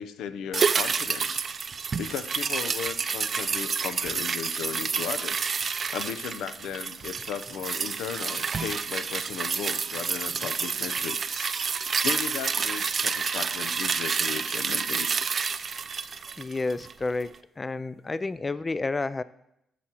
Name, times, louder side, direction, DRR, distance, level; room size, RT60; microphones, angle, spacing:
voice 1, 0.0-1.5 2.0-5.5 5.9-11.5 12.0-15.1, left 8 dB, 85° left, 13 dB, 0.5 m, -36 dB
sound 1, 0.5-17.0 17.3-17.4, right 5 dB, 45° right, 0.4 m, -29 dB
voice 2, 16.4-19.2, left 3 dB, 25° left, 16 dB, 0.3 m, -30 dB
15.0 x 7.6 x 2.9 m, 0.82 s
cardioid pair, 90°, 0 cm